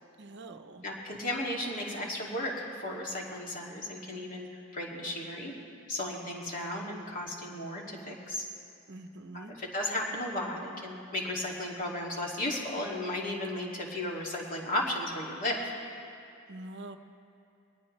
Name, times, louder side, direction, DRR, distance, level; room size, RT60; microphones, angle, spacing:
voice 1, 0.2-0.8 8.9-9.6 16.5-17.0, right 2 dB, 50° right, 8 dB, 0.8 m, -45 dB
voice 2, 0.8-4.5 4.7-5.6 5.9-8.5 9.3-15.7, left 1 dB, 35° left, -2 dB, 2.4 m, -34 dB
22.5 x 19.5 x 3.3 m, 2.6 s
head